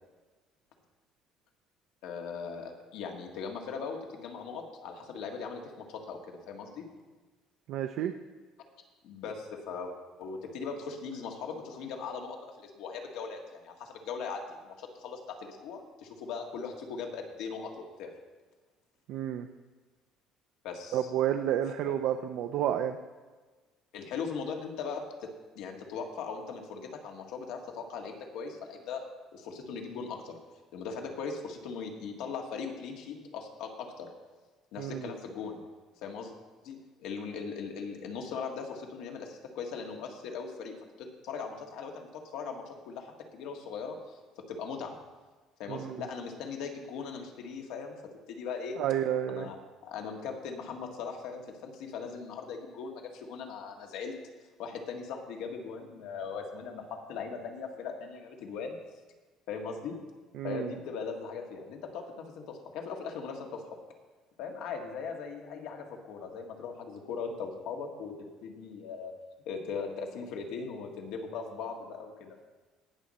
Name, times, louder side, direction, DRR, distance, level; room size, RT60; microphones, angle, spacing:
voice 1, 2.0-6.9 9.0-9.9 10.2-18.1 20.6-21.1 21.8-21.9 23.9-29.0 29.3-30.3 30.7-34.1 34.7-35.6 36.0-36.3 36.6-45.0 45.6-47.9 48.3-48.8 49.3-49.6 49.8-54.2 54.6-58.8 59.5-60.0 60.4-63.6 64.4-68.1 68.4-69.1 69.5-72.4, left 5 dB, 75° left, 3 dB, 1.7 m, -39 dB
voice 2, 7.7-8.1 19.1-19.5 20.9-23.0 34.8-35.1 45.7-46.0 48.8-49.5 60.3-60.7, right 10 dB, 65° right, 6 dB, 0.5 m, -30 dB
18.5 x 6.3 x 4.2 m, 1.3 s
cardioid pair, 145°, 0 cm